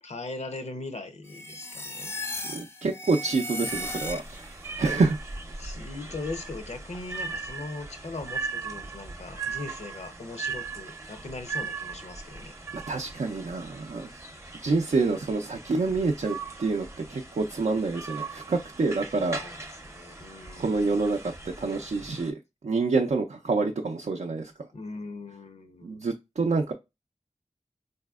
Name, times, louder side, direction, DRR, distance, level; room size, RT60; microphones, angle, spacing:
voice 1, 0.0-2.2 5.6-12.5 19.1-19.6 19.8-21.0 24.7-26.0, left 2 dB, 70° left, 0.6 m, -39 dB
sound 1, 1.2-4.6, left 1 dB, 20° left, 0.4 m, -36 dB
voice 2, 2.5-4.5 4.8-5.2 12.7-14.1 14.6-19.4 20.6-21.3 21.6-22.4 22.6-24.7 25.8-26.7, right 3 dB, 85° right, 0.4 m, -27 dB
sound 2, 3.7-22.3, right 4 dB, 25° right, 0.6 m, -39 dB
4.0 x 2.7 x 2.3 m
wide cardioid pair, 65°, 12 cm